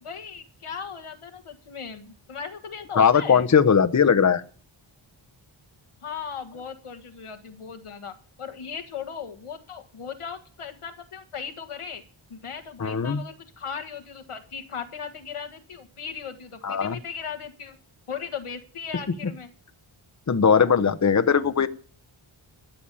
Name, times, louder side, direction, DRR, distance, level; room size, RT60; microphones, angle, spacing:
voice 1, 0.0-3.5 6.0-12.0 12.3-17.8 18.1-19.5, left 6 dB, 90° left, 6 dB, 1.7 m, -37 dB
voice 2, 3.0-4.4 12.8-13.2 16.6-17.0 20.3-21.7, left 6 dB, 35° left, 11 dB, 0.8 m, -19 dB
13.5 x 7.2 x 8.5 m, 0.43 s
wide cardioid pair, 115°, 49 cm